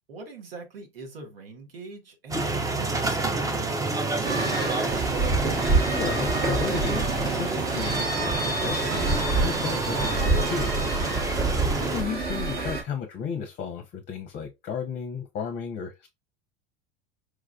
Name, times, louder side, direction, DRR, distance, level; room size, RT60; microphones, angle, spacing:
voice 1, 0.1-5.2, right 2 dB, 75° right, 1.1 m, -42 dB
sound 1, 2.3-12.0, right 3 dB, 10° right, 0.5 m, -29 dB
sound 2, 4.2-12.8, right 3 dB, 35° right, 1.1 m, -27 dB
voice 2, 5.9-10.7 11.8-16.1, left 6 dB, 35° left, 0.7 m, -34 dB
sound 3, 6.6-11.3, right 5 dB, 55° right, 1.0 m, -40 dB
4.7 x 2.3 x 2.2 m
figure-of-eight pair, 80°, 30 cm